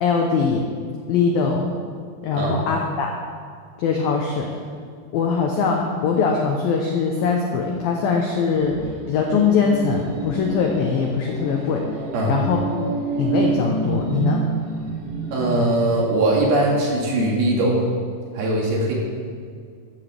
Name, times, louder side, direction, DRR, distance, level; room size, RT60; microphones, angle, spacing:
voice 1, 0.0-0.7 1.1-1.8 2.2-3.1 3.8-4.5 5.1-8.8 9.1-11.8 12.3-12.6 13.2-14.4, left 5 dB, 85° left, 1 dB, 2.1 m, -21 dB
sound 1, 8.3-15.6, right 4 dB, 90° right, 4.6 m, -28 dB
voice 2, 15.3-17.8 18.4-18.9, right 1 dB, 60° right, -3 dB, 3.5 m, -20 dB
14.5 x 13.0 x 3.5 m, 2.1 s
omnidirectional pair, 5.5 m